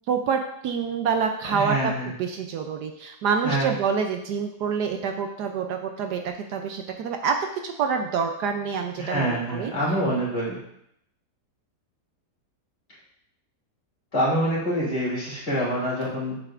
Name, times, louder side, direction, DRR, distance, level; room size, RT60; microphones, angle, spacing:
voice 1, 0.1-7.4 7.6-9.7, right 6 dB, 70° right, 4 dB, 1.1 m, -27 dB
voice 2, 1.4-2.1 3.4-3.7 9.0-10.6 14.1-16.3, right 1 dB, 40° left, -6 dB, 3.0 m, -26 dB
8.0 x 7.5 x 2.5 m, 0.75 s
omnidirectional pair, 1.9 m